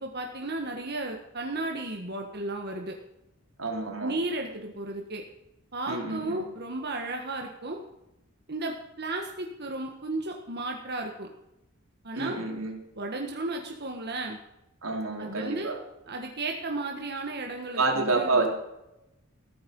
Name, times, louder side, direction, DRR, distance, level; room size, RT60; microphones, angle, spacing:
voice 1, 0.0-3.0 4.0-5.2 5.7-7.8 8.5-11.3 12.0-12.4 13.0-14.4 15.2-15.7 16.1-18.4, right 2 dB, 50° right, 2 dB, 1.6 m, -34 dB
voice 2, 3.6-4.2 5.9-6.4 12.1-12.7 14.8-15.8 17.8-18.5, right 3 dB, 75° right, 1 dB, 3.9 m, -28 dB
15.5 x 13.0 x 5.5 m, 0.89 s
head